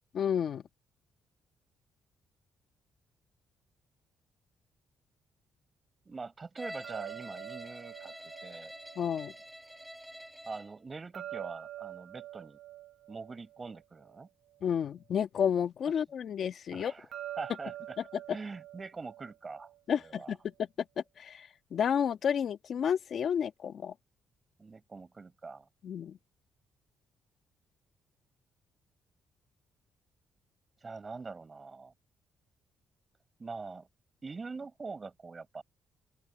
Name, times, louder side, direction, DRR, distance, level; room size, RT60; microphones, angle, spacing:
voice 1, 0.1-0.6 9.0-9.3 14.6-16.9 19.9-20.7 21.2-23.9 25.8-26.2, left 8 dB, 60° left, 1.6 m, -31 dB
voice 2, 6.0-8.7 10.4-12.6 13.1-14.3 16.7-17.1 17.4-18.0 18.3-20.4 24.6-25.7 30.8-31.9 33.4-33.9 34.2-35.6, right 4 dB, 30° right, 6.6 m, -43 dB
Bowed string instrument, 6.6-10.8, equal, 5° right, 6.5 m, -47 dB
sound 1, 6.8-9.9 11.1-14.7 17.1-20.2, right 13 dB, 75° right, 1.0 m, -46 dB
open air
cardioid pair, 90°, 0 cm